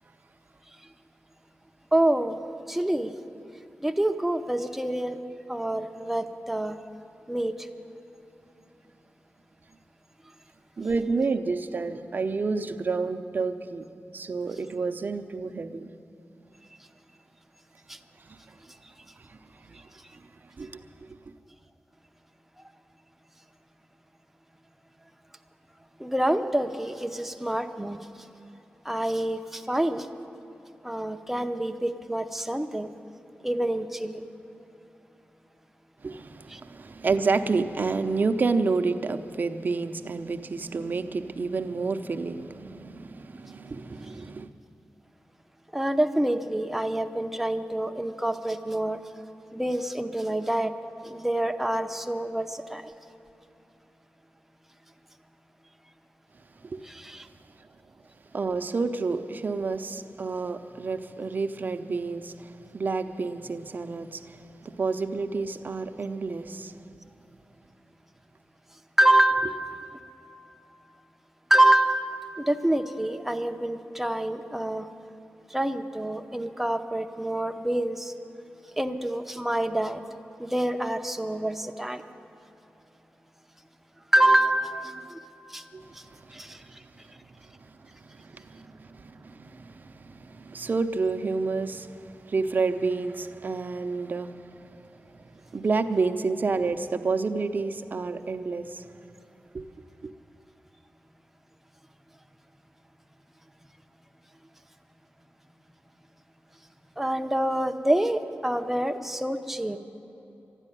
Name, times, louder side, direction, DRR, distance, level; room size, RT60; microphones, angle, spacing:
voice 1, 1.9-2.4 2.7-3.1 3.8-5.2 5.5-6.8 7.3-7.7 17.9-18.0 26.0-28.1 28.8-30.1 30.8-32.9 33.4-34.2 36.5-36.6 45.7-49.0 49.5-50.7 51.0-52.9 56.8-57.3 69.0-69.8 71.5-74.9 75.5-78.1 78.8-80.0 80.4-82.0 84.1-85.2 85.5-85.6 85.9-86.0 86.3-86.8 107.0-109.8, right 1 dB, 5° right, 7 dB, 0.7 m, -26 dB
voice 2, 10.8-13.9 14.1-15.9 18.3-18.4 19.2-19.9 20.1-21.1 36.0-44.5 56.6-56.8 58.3-66.7 85.7-86.8 87.5-87.7 88.0-94.8 95.2-98.9 99.5-99.7 100.0-100.1, right 4 dB, 50° right, 8 dB, 0.7 m, -30 dB
12.5 x 11.0 x 10.0 m, 2.8 s
wide cardioid pair, 115°, 4 cm